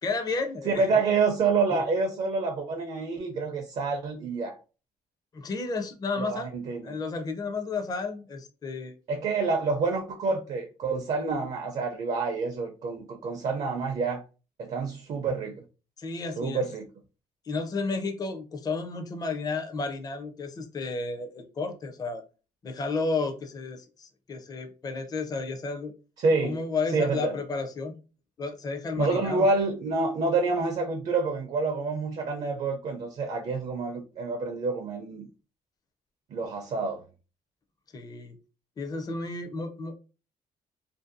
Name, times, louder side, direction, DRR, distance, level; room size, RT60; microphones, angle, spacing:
voice 1, 0.0-0.9 5.3-6.5 6.8-8.9 16.0-16.6 17.5-22.2 22.6-25.9 26.4-27.9 28.4-29.5 37.9-38.4 38.8-39.9, left 3 dB, 25° left, 0.4 m, -32 dB
voice 2, 0.7-4.5 6.2-7.0 9.1-14.2 14.6-15.6 16.4-16.8 26.2-26.6 26.9-27.3 29.0-35.3 36.3-37.0, right 4 dB, 50° right, 0.5 m, -28 dB
2.5 x 2.2 x 2.5 m
cardioid pair, 105°, 15 cm